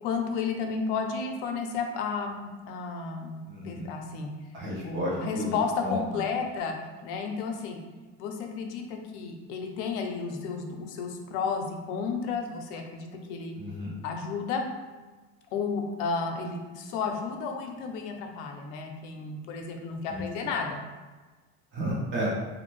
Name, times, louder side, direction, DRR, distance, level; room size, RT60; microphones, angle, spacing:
voice 1, 0.0-4.3 4.8-6.7 7.0-7.8 8.2-13.5 14.0-14.6 15.5-20.8, left 5 dB, 80° left, 4 dB, 0.6 m, -32 dB
voice 2, 3.4-3.9 4.5-6.2 13.6-13.9 20.1-20.2 21.7-22.3, equal, 35° right, -5 dB, 1.0 m, -32 dB
2.6 x 2.5 x 3.1 m, 1.3 s
cardioid pair, 155°, 34 cm